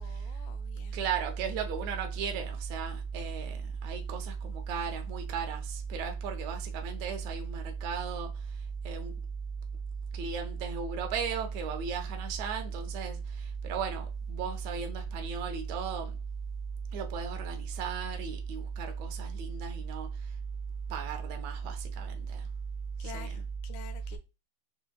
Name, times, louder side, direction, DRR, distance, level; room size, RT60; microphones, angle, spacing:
voice 1, 0.0-1.0 23.0-24.2, left 8 dB, 80° left, 1.8 m, -49 dB
voice 2, 0.9-8.3 8.8-9.1 10.1-16.1 16.9-20.1 20.9-22.5 23.0-23.4, right 6 dB, 75° right, 1.9 m, -34 dB
6.3 x 2.7 x 2.3 m
omnidirectional pair, 3.3 m